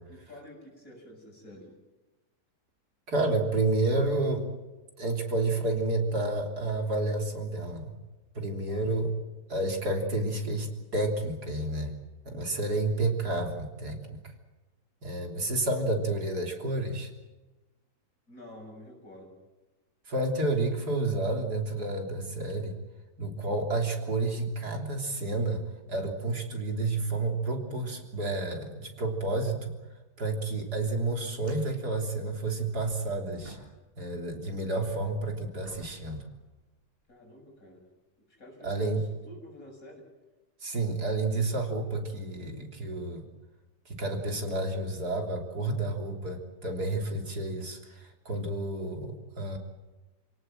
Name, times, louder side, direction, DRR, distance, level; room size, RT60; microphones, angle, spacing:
voice 1, 0.1-1.8 8.7-8.9 18.3-19.4 37.1-37.8 38.2-40.1, left 1 dB, 55° left, 1 dB, 7.5 m, -49 dB
voice 2, 3.1-4.5 5.0-8.0 8.4-9.1 9.5-11.9 12.2-14.2 15.0-17.1 20.1-22.8 23.2-29.7 30.2-33.6 34.0-36.2 38.6-39.0 40.6-43.3 43.9-49.6, right 2 dB, 70° right, 2 dB, 3.9 m, -30 dB
sound 1, 30.0-30.1 30.4-30.5 31.3-34.1 34.5-37.2 37.8-37.9 42.1-42.2 43.6-43.7, right 1 dB, 30° right, 7.4 m, -55 dB
28.5 x 18.0 x 7.8 m, 1.1 s
omnidirectional pair, 1.8 m